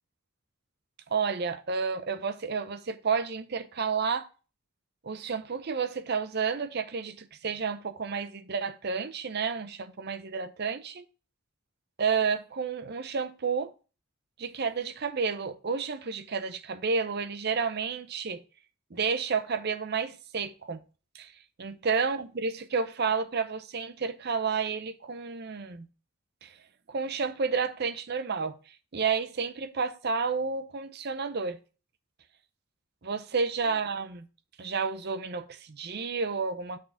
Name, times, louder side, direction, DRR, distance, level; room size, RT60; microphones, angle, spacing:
voice 1, 1.1-4.3 5.0-11.0 12.0-13.7 14.4-18.4 18.9-20.8 21.1-21.3 21.6-25.9 26.4-26.5 26.9-28.6 28.9-31.6 33.0-34.3 34.6-36.8, right 5 dB, 50° right, 0.6 m, -31 dB
6.5 x 3.7 x 5.6 m
head